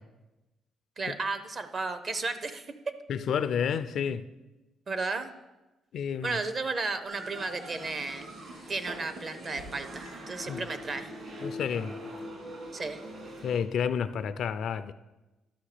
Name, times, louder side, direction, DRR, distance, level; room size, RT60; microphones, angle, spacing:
voice 1, 1.0-3.0 4.9-5.3 6.2-8.3 8.7-11.1 12.7-13.0, right 3 dB, 40° right, 0.8 m, -34 dB
voice 2, 3.1-4.2 5.9-6.4 10.5-10.7 11.4-11.9 13.4-14.9, left 7 dB, 65° left, 0.4 m, -30 dB
sound 1, 7.0-13.6, equal, 60° right, 2.9 m, -42 dB
12.0 x 5.8 x 5.0 m
cardioid pair, 90°, 0 cm